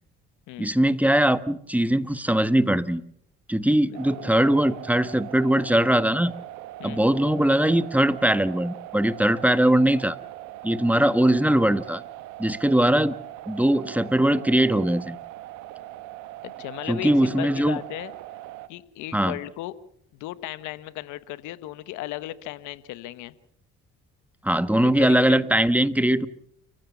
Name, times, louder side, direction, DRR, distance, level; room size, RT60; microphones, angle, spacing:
voice 1, 0.6-3.0 3.5-6.3 6.8-10.2 10.6-12.0 12.4-13.1 13.5-15.2 16.9-17.8 19.1-19.4 24.4-26.3, right 1 dB, 5° right, 13 dB, 1.5 m, -21 dB
voice 2, 3.8-4.3 6.8-7.0 16.4-18.1 18.7-19.7 20.2-23.3 24.8-25.4, left 15 dB, 80° left, 14 dB, 1.3 m, -36 dB
sound 1, 3.9-18.7, right 15 dB, 80° right, 1.4 m, -41 dB
29.5 x 15.5 x 7.1 m, 0.67 s
supercardioid pair, 65°, 30 cm